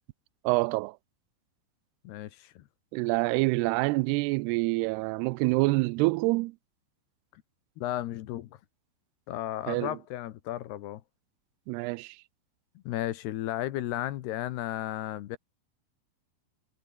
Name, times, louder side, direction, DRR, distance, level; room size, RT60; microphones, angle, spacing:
voice 1, 0.4-1.0 2.9-6.6 9.7-10.0 11.7-12.2, right 24 dB, 80° right, 2.4 m, -26 dB
voice 2, 2.0-2.6 7.8-8.5 9.3-11.0 12.9-15.4, left 13 dB, 75° left, 3.1 m, -34 dB
omnidirectional pair, 5.1 m